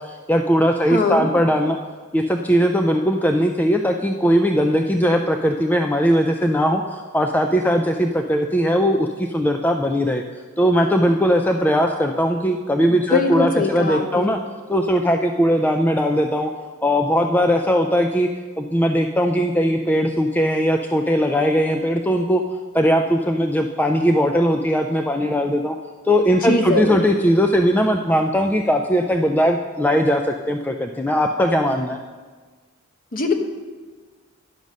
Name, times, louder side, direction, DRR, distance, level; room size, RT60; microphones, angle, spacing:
voice 1, 0.0-1.8 2.1-10.2 10.6-14.4 14.7-16.5 16.8-18.3 18.6-22.4 22.7-25.8 26.0-32.0, equal, 10° left, 4 dB, 0.3 m, -19 dB
voice 2, 0.9-1.3 12.9-14.4 26.4-27.0 33.1-33.3, left 3 dB, 40° left, 4 dB, 0.9 m, -21 dB
10.5 x 5.3 x 6.2 m, 1.4 s
head